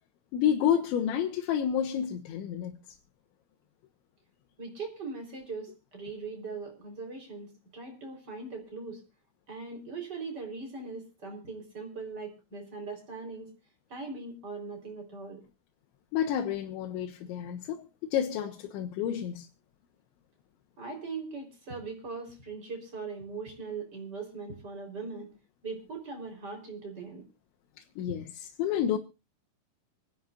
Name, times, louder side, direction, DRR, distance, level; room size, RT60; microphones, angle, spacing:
voice 1, 0.3-2.7 16.1-17.8 18.1-19.5 28.0-28.2 28.6-29.0, left 9 dB, 80° left, 3.4 m, -29 dB
voice 2, 4.6-9.0 9.5-13.5 13.9-15.4 20.8-25.3 25.6-27.2, right 4 dB, 25° right, 4.2 m, -40 dB
26.0 x 11.5 x 2.6 m
omnidirectional pair, 5.3 m